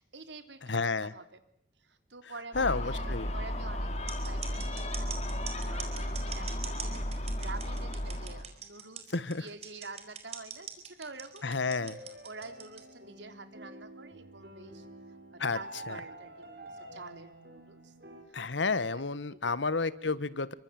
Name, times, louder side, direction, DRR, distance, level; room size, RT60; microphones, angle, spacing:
voice 1, 0.0-1.4 1.8-3.9 4.2-11.5 11.8-11.9 12.2-14.9 15.3-17.9 18.3-18.4 18.9-19.0 19.3-19.6 20.1-20.2, right 3 dB, 80° right, 9 dB, 3.5 m, -48 dB
voice 2, 0.6-1.1 2.5-3.3 9.1-9.5 11.4-12.0 15.4-15.6 15.9-16.0 18.3-20.5, left 4 dB, 90° left, 16 dB, 1.5 m, -31 dB
Gull seagull, 2.5-8.4, equal, 35° left, 3.9 m, -34 dB
sound 1, 4.1-12.8, right 8 dB, 35° right, 4.6 m, -42 dB
sound 2, 11.6-18.2, right 1 dB, 60° right, 7.8 m, -48 dB
30.0 x 25.0 x 7.7 m, 0.64 s
head